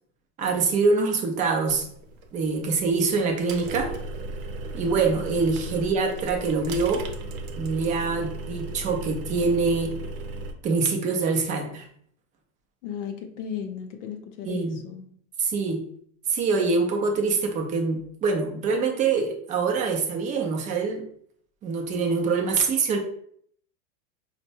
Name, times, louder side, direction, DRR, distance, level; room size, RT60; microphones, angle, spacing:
voice 1, 0.4-1.9 2.3-3.9 4.7-7.0 7.6-9.9 10.6-11.8 14.4-14.8 15.4-15.8 16.3-21.0 21.6-23.0, right 4 dB, 20° right, 3 dB, 0.4 m, -24 dB
sound 1, 1.7-10.5, right 2 dB, 75° right, 0.7 m, -36 dB
voice 2, 12.8-15.1, left 7 dB, 60° left, 4 dB, 0.6 m, -35 dB
4.3 x 2.1 x 2.7 m, 0.64 s
hypercardioid pair, 120°, 41 cm